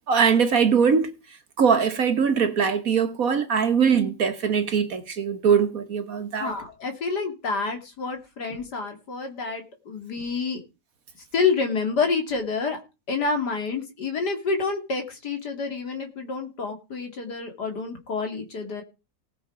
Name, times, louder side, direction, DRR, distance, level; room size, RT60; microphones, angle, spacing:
voice 1, 0.1-1.1 1.6-6.5, right 6 dB, 55° right, 1.5 m, -21 dB
voice 2, 6.4-10.6 11.3-12.8 13.1-18.8, left 4 dB, 65° left, 3.1 m, -28 dB
18.5 x 6.6 x 5.0 m
omnidirectional pair, 2.0 m